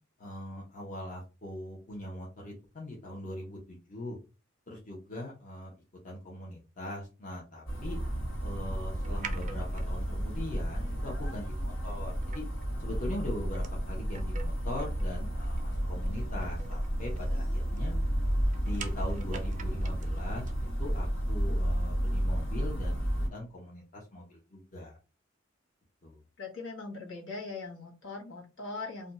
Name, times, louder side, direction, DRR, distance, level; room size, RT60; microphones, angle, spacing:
voice 1, 0.2-4.2 4.7-5.7 6.0-8.0 8.4-12.4 12.8-18.0 18.6-23.0 23.3-24.9 26.0-26.2, left 1 dB, 40° left, -2 dB, 0.8 m, -41 dB
sound 1, 7.7-23.3, equal, 90° left, 1.2 m, -32 dB
sound 2, 9.0-20.5, right 6 dB, 40° right, 0.5 m, -49 dB
voice 2, 26.4-29.1, left 3 dB, 70° left, -2 dB, 1.2 m, -40 dB
2.6 x 2.2 x 3.9 m, 0.31 s
head